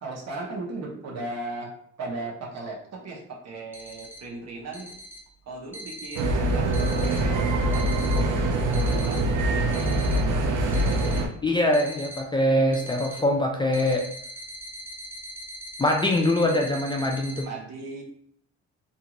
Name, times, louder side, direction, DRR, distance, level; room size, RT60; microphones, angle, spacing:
voice 1, 0.0-4.9 5.5-9.2 9.5-10.2 16.4-16.5 17.4-18.0, right 2 dB, 60° right, -1 dB, 0.9 m, -37 dB
sound 1, 3.7-4.2 4.7-5.2 5.7-6.2 6.7-7.2 7.7-8.2 8.7-9.2 9.7-10.2 10.7-11.2 11.7-12.2 12.7-13.2 13.7-17.4, equal, 5° right, 0.8 m, -40 dB
sound 2, 6.2-11.3, right 1 dB, 85° right, 0.6 m, -24 dB
voice 2, 11.4-14.0 15.8-17.5, left 1 dB, 15° left, 1 dB, 0.4 m, -23 dB
2.6 x 2.4 x 2.9 m, 0.67 s
cardioid pair, 90°, 30 cm